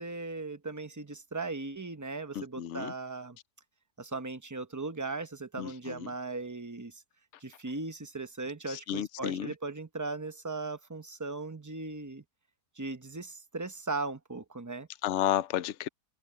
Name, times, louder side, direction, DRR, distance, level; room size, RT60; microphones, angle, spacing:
voice 1, 0.0-3.4 4.0-7.0 7.4-12.2 12.8-14.9, right 3 dB, 15° right, 0.6 m, -38 dB
voice 2, 2.4-2.9 5.6-6.1 8.7-9.5 15.0-15.9, left 11 dB, 60° left, 0.8 m, -32 dB
omnidirectional pair, 1.7 m